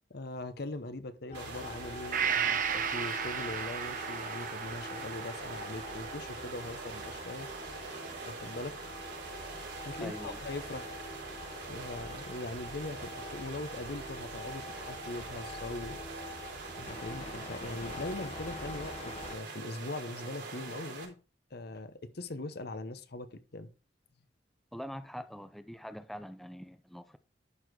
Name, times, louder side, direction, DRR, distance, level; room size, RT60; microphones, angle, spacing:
voice 1, 0.1-7.8 8.3-8.8 9.8-10.9 11.7-16.0 16.8-21.2 21.5-23.7, left 2 dB, 60° left, 0.9 m, -41 dB
sound 1, 1.3-19.4, left 2 dB, 40° left, 1.2 m, -46 dB
sound 2, 1.3-21.1, right 4 dB, 70° right, 3.8 m, -44 dB
Gong, 2.1-9.8 10.1-10.2, right 7 dB, 50° right, 1.0 m, -37 dB
voice 2, 10.0-10.4 24.7-27.2, equal, ahead, 0.5 m, -43 dB
11.5 x 4.2 x 4.7 m
head